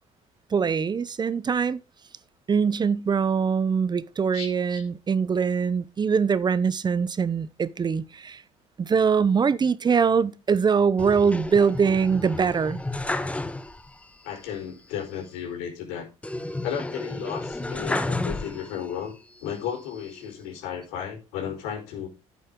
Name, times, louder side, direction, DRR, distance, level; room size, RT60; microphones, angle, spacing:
voice 1, 0.5-1.8 2.5-8.4 8.8-12.8, right 6 dB, 30° right, 0.7 m, -23 dB
sound 1, 11.0-14.0 14.3-14.4 16.2-19.0 19.5-20.3, left 2 dB, 10° left, 1.2 m, -32 dB
voice 2, 14.2-16.1 16.5-19.1 19.4-22.1, left 8 dB, 85° left, 4.6 m, -34 dB
11.0 x 8.3 x 3.8 m
supercardioid pair, 85°, 14 cm